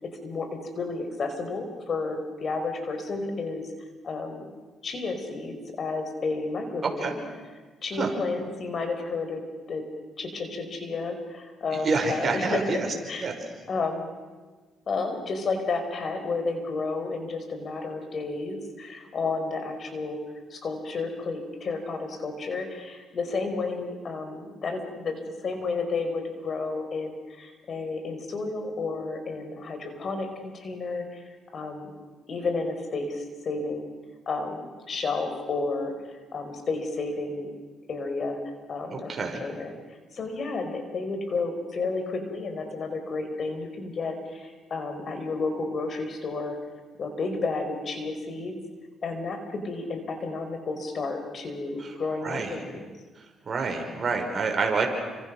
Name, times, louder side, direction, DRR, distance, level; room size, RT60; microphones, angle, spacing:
voice 1, 0.0-3.7 4.0-4.4 4.8-7.2 7.8-9.8 10.2-13.3 13.7-14.1 14.9-20.2 20.5-31.9 32.3-33.9 34.2-37.5 37.9-39.8 40.1-46.6 47.0-48.6 49.0-52.9, left 3 dB, 50° left, 6 dB, 5.1 m, -31 dB
voice 2, 6.8-7.2 8.0-8.1 11.7-12.9 13.2-13.3 38.9-39.4 52.2-52.6 53.2-54.9, right 4 dB, 40° right, 3 dB, 5.6 m, -28 dB
30.0 x 26.0 x 6.4 m, 1.4 s
cardioid pair, 90°, 0 cm